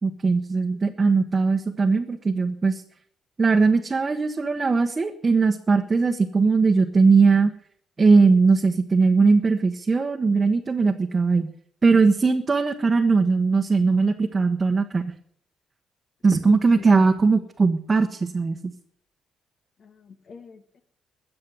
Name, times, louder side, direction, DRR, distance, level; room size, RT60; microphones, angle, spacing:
voice 1, 0.0-2.8 3.4-7.5 8.0-11.5 11.8-15.1 16.2-18.6, right 4 dB, 30° right, 3 dB, 1.1 m, -20 dB
voice 2, 16.4-16.9 19.8-20.8, left 5 dB, 55° left, 8 dB, 1.4 m, -43 dB
14.0 x 7.7 x 9.5 m, 0.64 s
cardioid pair, 90°, 0 cm